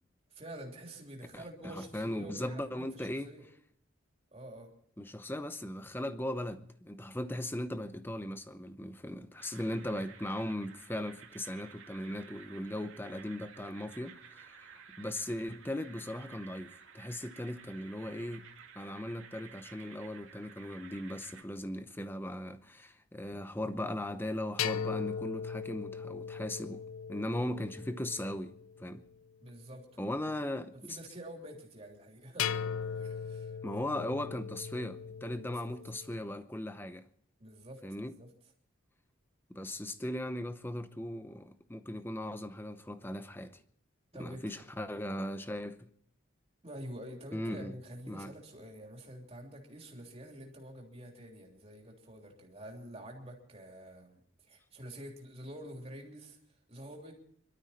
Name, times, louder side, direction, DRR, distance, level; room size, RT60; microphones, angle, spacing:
voice 1, 0.3-3.5 4.3-4.7 29.4-30.3 30.9-32.6 32.8-33.6 33.8-33.9 35.5-35.7 37.4-38.3 44.1-44.6 46.6-54.2 54.5-56.4 56.7-57.1, right 1 dB, 30° right, 3.2 m, -48 dB
voice 2, 1.3-3.3 5.0-18.4 18.7-26.8 27.1-29.1 30.0-31.0 33.6-37.0 37.8-38.1 39.5-43.6 44.2-45.9 47.3-47.7 48.1-48.3, left 1 dB, 10° left, 0.8 m, -38 dB
sound 1, 9.4-21.4, right 6 dB, 80° right, 2.2 m, -54 dB
sound 2, 24.6-28.9 32.4-36.2, left 7 dB, 85° left, 0.5 m, -38 dB
24.5 x 12.5 x 4.3 m
head